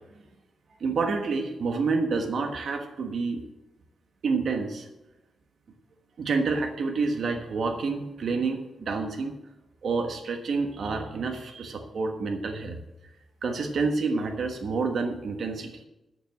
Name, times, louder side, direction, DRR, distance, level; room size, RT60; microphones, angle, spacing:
voice 1, 0.8-3.4 4.2-4.9 6.2-9.3 9.8-12.8 13.4-15.8, right 4 dB, 60° right, 4 dB, 1.3 m, -28 dB
9.0 x 7.1 x 7.5 m, 1.0 s
wide cardioid pair, 130°, 0 cm